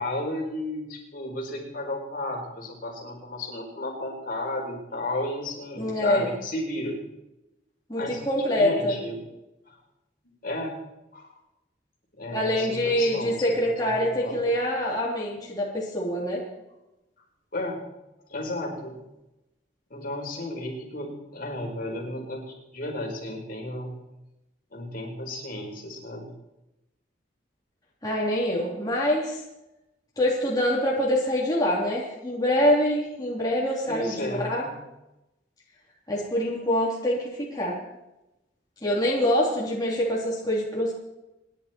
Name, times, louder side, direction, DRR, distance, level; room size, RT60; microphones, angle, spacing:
voice 1, 0.0-7.0 8.0-8.2 8.5-9.2 9.7-9.8 10.4-10.8 11.1-11.3 12.2-13.4 13.8-14.4 17.5-17.8 18.3-19.0 19.9-22.4 22.7-24.0 24.7-26.3 33.9-34.7, left 1 dB, 50° left, 0 dB, 4.9 m, -33 dB
voice 2, 5.8-6.3 7.9-9.0 12.3-16.4 28.0-29.4 30.2-34.6 36.1-37.8 38.8-40.9, left 1 dB, 20° left, -4 dB, 3.4 m, -25 dB
27.5 x 11.0 x 4.6 m, 0.95 s
head